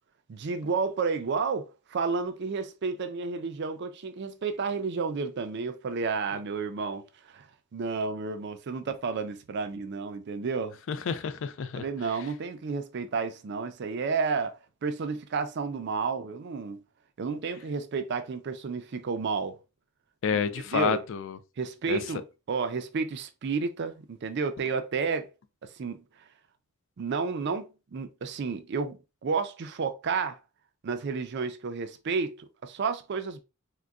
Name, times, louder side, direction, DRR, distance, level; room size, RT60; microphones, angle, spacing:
voice 1, 0.3-10.8 11.8-16.8 17.2-19.6 20.7-21.0 21.6-25.3 25.6-26.0 27.0-30.4 30.8-33.4, right 5 dB, 50° right, 0.4 m, -31 dB
voice 2, 10.9-11.8 20.2-21.4 21.9-22.0, left 6 dB, 60° left, 0.3 m, -29 dB
3.7 x 2.1 x 2.3 m
head